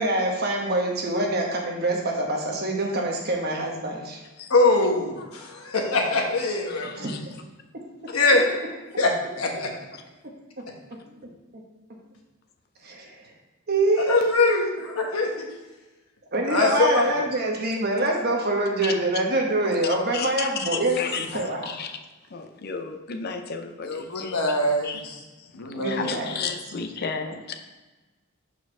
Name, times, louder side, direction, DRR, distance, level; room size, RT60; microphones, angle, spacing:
voice 1, 0.0-4.2 7.0-7.2 12.8-13.2 13.7-14.7 16.3-21.6 25.7-26.3, right 1 dB, 50° right, 0 dB, 1.2 m, -25 dB
voice 2, 4.5-7.2 8.1-8.5 9.0-9.7 14.1-15.5 16.5-17.2 23.8-25.1 25.5-26.1, left 2 dB, 85° left, 2 dB, 1.1 m, -23 dB
voice 3, 6.7-7.2 9.9-10.0 18.8-18.9 19.8-22.0 22.3-24.4 24.8-25.0 25.4-27.5, left 5 dB, 50° left, 6 dB, 0.5 m, -33 dB
4.8 x 4.4 x 5.8 m, 1.2 s
head